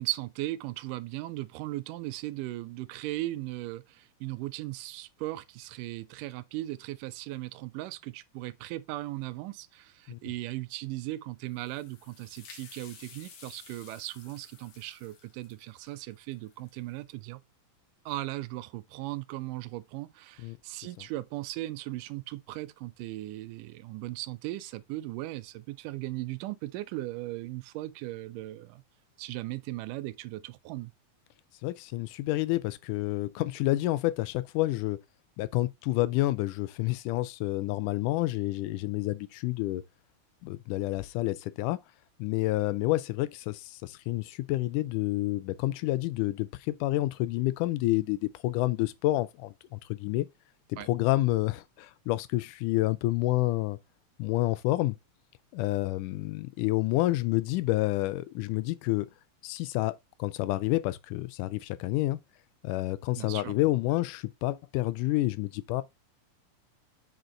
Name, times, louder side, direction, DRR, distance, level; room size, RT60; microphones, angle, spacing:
voice 1, 0.0-17.4 18.1-28.8 29.2-30.9 50.8-50.9 63.2-63.6, right 17 dB, 85° right, 2.2 m, -37 dB
sound 1, 11.4-17.0, left 6 dB, 65° left, 2.9 m, -53 dB
voice 2, 31.6-35.0 35.4-39.8 40.4-41.8 42.2-50.3 50.7-53.8 54.2-55.0 55.5-59.1 59.4-62.2 62.6-65.8, left 17 dB, 80° left, 2.1 m, -29 dB
8.0 x 4.4 x 3.8 m
omnidirectional pair, 3.7 m